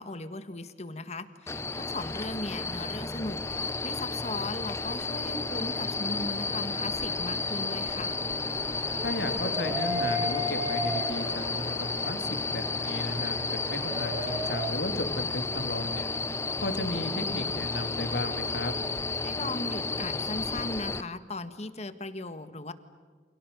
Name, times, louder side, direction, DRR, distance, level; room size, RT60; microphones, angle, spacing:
voice 1, 0.0-8.2 19.2-22.7, left 2 dB, 40° left, 10 dB, 1.7 m, -37 dB
sound 1, 1.5-21.0, left 3 dB, 15° left, 0.7 m, -32 dB
sound 2, 5.0-14.7, equal, 20° right, 5.0 m, -37 dB
voice 2, 9.0-16.1 16.6-18.7, left 1 dB, 75° left, 5 dB, 3.1 m, -34 dB
30.0 x 27.5 x 7.0 m, 1.5 s
head